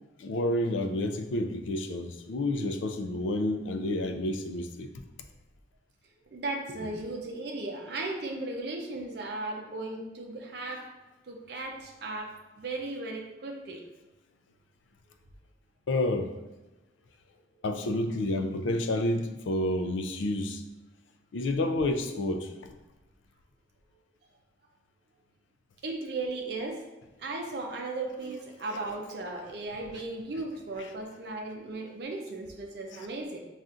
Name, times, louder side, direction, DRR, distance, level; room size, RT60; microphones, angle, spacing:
voice 1, 0.2-4.9 15.9-16.3 17.6-20.6 21.3-22.5, left 1 dB, 80° left, 7 dB, 0.4 m, -29 dB
voice 2, 6.3-10.8 11.3-13.8 25.8-26.8 27.2-33.4, right 2 dB, 60° right, 0 dB, 0.5 m, -36 dB
5.5 x 2.4 x 2.5 m, 1.1 s
head